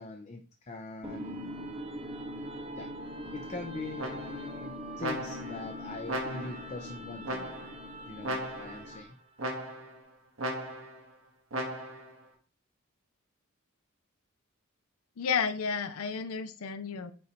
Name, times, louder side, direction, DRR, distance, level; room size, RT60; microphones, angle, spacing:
voice 1, 0.0-1.5 2.7-2.9 3.3-7.6 8.1-9.2, left 2 dB, 30° left, 4 dB, 0.5 m, -42 dB
sound 1, 1.0-9.2, equal, 30° right, 0.9 m, -42 dB
sound 2, 4.0-4.5 5.0-5.6 6.1-6.7 7.2-7.8 8.2-8.9 9.4-10.0 10.4-11.0 11.5-12.1, right 1 dB, 65° right, 1.4 m, -36 dB
voice 2, 15.2-17.1, left 6 dB, 80° left, 11 dB, 0.5 m, -32 dB
5.4 x 3.9 x 4.4 m, 0.39 s
head